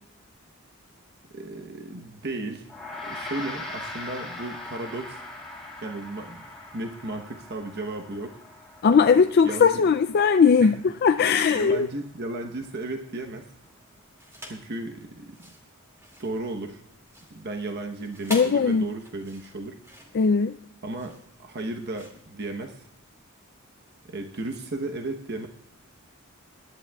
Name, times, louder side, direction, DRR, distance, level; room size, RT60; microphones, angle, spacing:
voice 1, 1.3-2.7 3.0-5.2 5.8-6.5 6.7-8.4 8.9-9.1 9.4-9.8 10.6-10.7 11.5-13.5 14.4-15.4 16.2-16.8 17.3-19.8 20.8-22.9 24.1-25.5, right 2 dB, 50° right, 3 dB, 1.0 m, -34 dB
Gong, 2.7-12.2, left 2 dB, 5° left, 3.1 m, -41 dB
voice 2, 8.8-11.9 18.3-18.9 20.1-20.6, left 5 dB, 50° left, 8 dB, 0.4 m, -19 dB
sound 1, 14.2-14.7 15.2-23.1, equal, 15° right, 2.2 m, -44 dB
22.0 x 11.0 x 2.3 m, 0.78 s
head